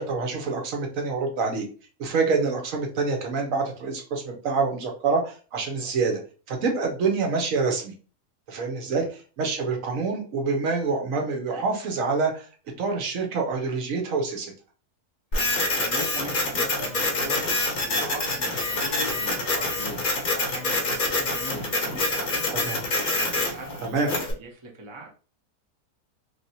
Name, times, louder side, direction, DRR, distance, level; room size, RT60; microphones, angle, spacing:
voice 1, 0.0-1.7 2.0-6.2 6.5-7.9 8.5-12.5 12.8-14.5 22.5-22.8 23.8-24.2, right 4 dB, 65° right, 3 dB, 1.1 m, -26 dB
Printer, 15.3-24.3, left 2 dB, 45° left, 0.7 m, -26 dB
voice 2, 15.8-17.4 17.8-20.0 20.3-22.6 23.1-24.1 24.4-25.1, right 2 dB, 40° right, 0 dB, 0.4 m, -40 dB
3.1 x 2.6 x 2.7 m, 0.37 s
omnidirectional pair, 1.6 m